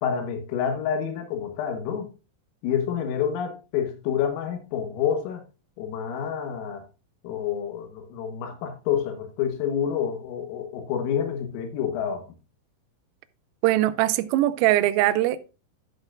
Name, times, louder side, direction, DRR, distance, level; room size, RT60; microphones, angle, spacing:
voice 1, 0.0-2.1 2.6-5.4 5.8-6.8 7.2-12.2, left 8 dB, 85° left, 3.9 m, -28 dB
voice 2, 13.6-15.4, right 15 dB, 85° right, 3.2 m, -21 dB
13.0 x 6.4 x 2.5 m
omnidirectional pair, 5.8 m